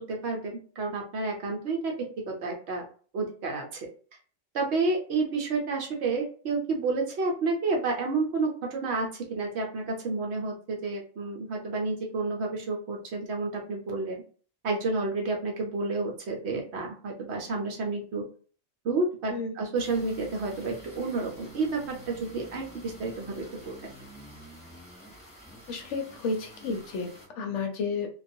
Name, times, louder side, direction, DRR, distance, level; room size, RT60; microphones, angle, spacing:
voice 1, 0.0-1.9 2.3-2.9 3.1-3.6 4.5-14.2 14.6-18.2 18.8-23.8, right 3 dB, 65° right, 1 dB, 0.9 m, -30 dB
sound 1, 19.7-27.3, equal, 5° left, 1.0 m, -49 dB
voice 2, 25.7-28.1, left 4 dB, 70° left, 4 dB, 0.9 m, -32 dB
2.3 x 2.3 x 2.6 m, 0.42 s
omnidirectional pair, 1.3 m